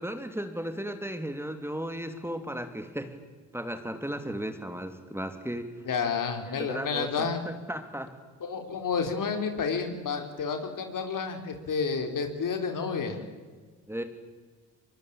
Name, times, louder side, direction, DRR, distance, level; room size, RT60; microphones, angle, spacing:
voice 1, 0.0-3.1 3.5-5.7 6.4-8.1 13.9-14.0, equal, 5° right, 7 dB, 3.1 m, -35 dB
voice 2, 5.9-7.4 8.4-13.2, left 5 dB, 55° left, 5 dB, 4.4 m, -30 dB
23.5 x 22.0 x 9.0 m, 1.4 s
hypercardioid pair, 55°, 39 cm